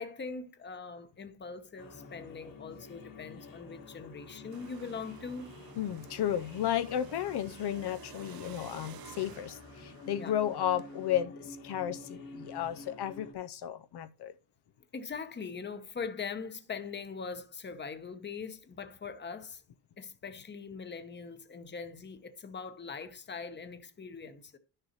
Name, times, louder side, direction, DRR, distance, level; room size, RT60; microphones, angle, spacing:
voice 1, 0.0-5.5 10.1-10.6 14.9-19.6 20.0-24.6, left 5 dB, 25° left, 0.9 m, -42 dB
sound 1, 1.8-13.3, left 2 dB, 50° left, 1.6 m, -49 dB
sound 2, 4.5-11.2, right 10 dB, 60° right, 0.7 m, -53 dB
voice 2, 5.8-14.3, left 10 dB, 70° left, 0.6 m, -33 dB
11.5 x 6.7 x 3.0 m
wide cardioid pair, 165°, 41 cm